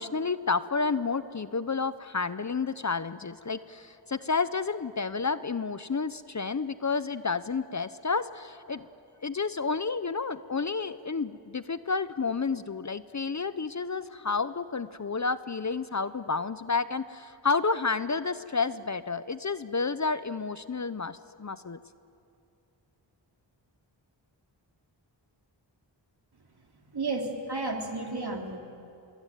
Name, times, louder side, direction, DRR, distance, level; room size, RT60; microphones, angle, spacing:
voice 1, 0.0-8.9 9.2-21.8, left 4 dB, 40° left, 14 dB, 0.8 m, -30 dB
voice 2, 26.9-28.6, right 3 dB, 55° right, 2 dB, 3.5 m, -32 dB
25.5 x 23.0 x 9.2 m, 2.6 s
cardioid pair, 50°, 45 cm